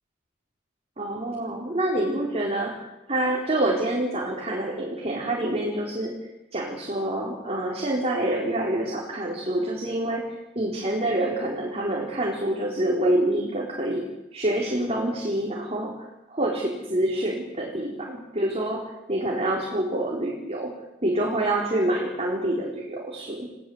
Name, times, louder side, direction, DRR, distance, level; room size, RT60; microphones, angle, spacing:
voice 1, 1.0-6.2 6.5-10.3 10.6-14.1 14.3-20.7 21.0-23.5, right 1 dB, 35° right, -2 dB, 4.1 m, -27 dB
30.0 x 18.0 x 7.9 m, 0.95 s
head